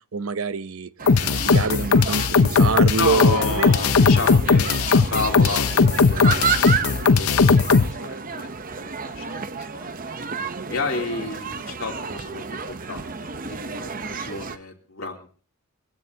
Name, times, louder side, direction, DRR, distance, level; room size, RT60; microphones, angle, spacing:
voice 1, 0.1-0.9 1.2-3.7 4.5-4.8, right 5 dB, 75° right, 14 dB, 0.8 m, -26 dB
sound 1, 1.0-14.6, right 5 dB, 40° right, 0.8 m, -31 dB
sound 2, 1.1-7.9, left 4 dB, 85° left, 0.7 m, -18 dB
voice 2, 3.0-10.1 10.7-15.4, left 4 dB, 70° left, 1 dB, 3.3 m, -31 dB
24.0 x 16.5 x 2.8 m, 0.40 s
head